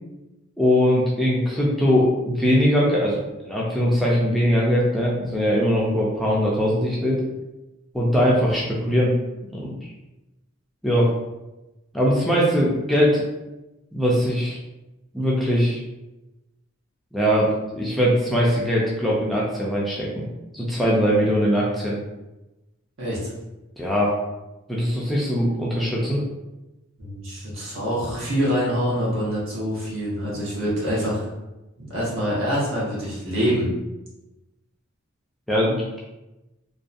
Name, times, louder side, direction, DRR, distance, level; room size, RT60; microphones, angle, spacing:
voice 1, 0.6-3.2 3.4-7.2 7.9-9.1 9.5-9.9 10.8-11.1 11.9-13.2 13.9-14.6 15.1-15.8 17.1-20.2 20.5-22.0 23.8-24.1 24.7-26.2 35.5-36.0, equal, ahead, -6 dB, 0.3 m, -21 dB
voice 2, 23.0-23.3 27.0-31.3 31.8-33.7, equal, 65° right, -6 dB, 1.0 m, -25 dB
2.6 x 2.2 x 2.5 m, 1.0 s
head